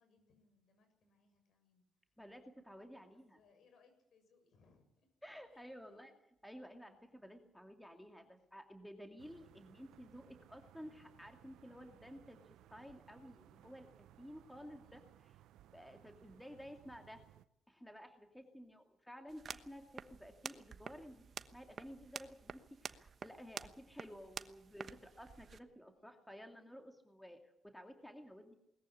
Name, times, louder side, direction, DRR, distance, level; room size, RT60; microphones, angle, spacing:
voice 1, 0.0-2.1 2.9-5.1 5.5-6.2 14.8-15.2 25.8-26.2, left 4 dB, 65° left, 6 dB, 7.0 m, -72 dB
voice 2, 2.2-3.4 5.2-6.1 6.4-15.3 15.7-17.2 17.7-21.3 21.5-28.5, equal, 5° left, 5 dB, 2.4 m, -54 dB
sound 1, 9.2-17.5, right 12 dB, 85° right, 0.7 m, -63 dB
sound 2, 19.3-25.6, right 6 dB, 50° right, 1.1 m, -50 dB
20.5 x 14.0 x 9.9 m, 0.80 s
cardioid pair, 90°, 0 cm